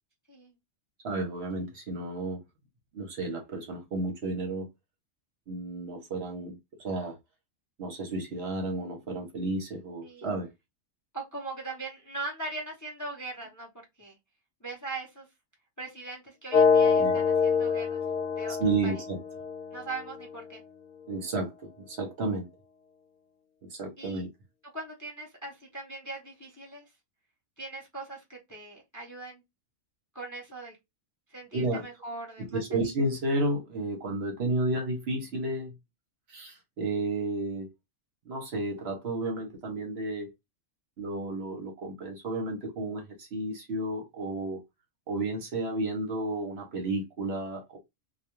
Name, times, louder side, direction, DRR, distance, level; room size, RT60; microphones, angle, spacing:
voice 1, 1.0-2.4 2.9-4.7 5.5-7.2 7.8-10.5 16.9-17.2 18.6-19.2 21.1-21.5 21.8-22.5 23.7-24.3 31.5-31.8 32.4-35.7 36.3-37.7 38.3-40.3 41.0-44.6 45.1-47.8, right 2 dB, 55° right, 0.9 m, -32 dB
voice 2, 11.1-13.7 14.0-14.2 14.6-15.3 15.8-18.0 18.3-18.6 18.8-19.0 19.7-20.6 24.0-24.2 24.7-26.8 27.6-29.4 30.1-30.8 31.3-32.6, right 3 dB, 20° left, 0.5 m, -40 dB
sound 1, 16.5-20.5, left 5 dB, 75° left, 1.0 m, -25 dB
2.4 x 2.2 x 2.9 m
omnidirectional pair, 1.4 m